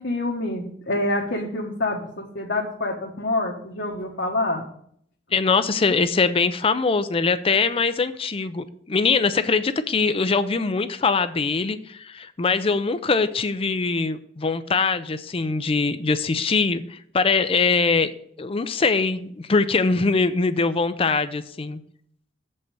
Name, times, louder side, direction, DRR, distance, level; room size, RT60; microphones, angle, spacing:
voice 1, 0.0-4.7, left 2 dB, 80° left, -2 dB, 1.3 m, -27 dB
voice 2, 5.3-18.1 18.4-21.8, left 4 dB, 30° left, 12 dB, 0.5 m, -22 dB
7.5 x 5.4 x 6.8 m, 0.66 s
head